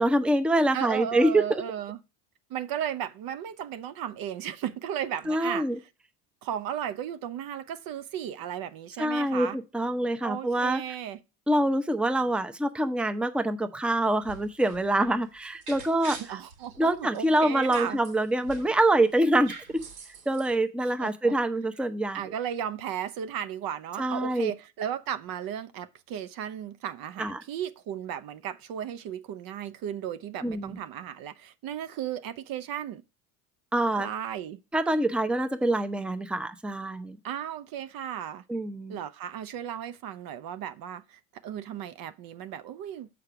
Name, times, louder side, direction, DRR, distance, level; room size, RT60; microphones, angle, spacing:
voice 1, 0.0-1.4 5.3-5.7 9.0-10.8 11.5-16.2 16.8-19.5 20.3-22.2 24.0-24.5 27.2-27.4 30.4-30.8 33.7-34.1 34.7-37.2 38.5-39.0, right 1 dB, ahead, 0.7 m, -25 dB
voice 2, 0.7-2.0 2.5-5.7 6.4-9.6 10.2-11.2 16.2-18.0 20.8-21.3 22.1-33.0 34.0-34.6 37.2-38.4 38.9-43.1, right 9 dB, 55° right, 0.8 m, -35 dB
sound 1, 14.1-18.9 19.1-20.6, right 5 dB, 85° right, 3.7 m, -45 dB
6.5 x 5.1 x 5.8 m
supercardioid pair, 90°, 42 cm